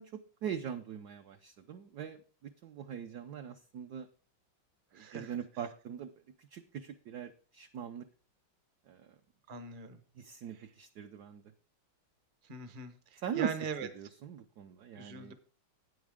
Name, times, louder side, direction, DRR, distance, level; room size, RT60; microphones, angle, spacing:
voice 1, 0.0-4.1 4.9-6.1 6.4-8.1 8.9-9.1 10.2-11.4 13.2-15.3, right 8 dB, 70° right, 6 dB, 1.0 m, -41 dB
voice 2, 4.9-5.3 9.5-10.0 12.5-13.9 15.0-15.3, right 5 dB, 40° right, 9 dB, 0.7 m, -41 dB
9.5 x 9.0 x 3.6 m, 0.39 s
omnidirectional pair, 2.3 m